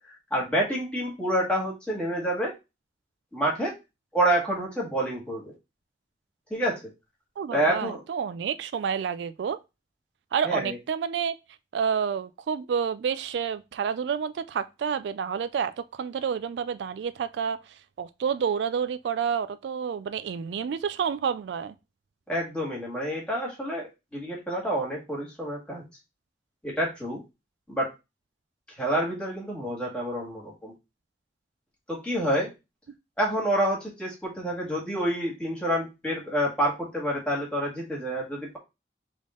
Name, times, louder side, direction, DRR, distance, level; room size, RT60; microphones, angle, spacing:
voice 1, 0.3-2.5 3.3-3.7 4.1-5.5 6.5-6.8 7.5-8.0 10.4-10.8 22.3-25.8 26.6-27.2 27.7-27.9 28.8-30.7 31.9-32.5 33.2-38.6, right 1 dB, 5° left, 1.7 m, -28 dB
voice 2, 7.4-9.6 10.3-11.3 11.7-17.6 18.0-21.7, right 7 dB, 80° right, 0.3 m, -29 dB
3.7 x 3.5 x 3.6 m
head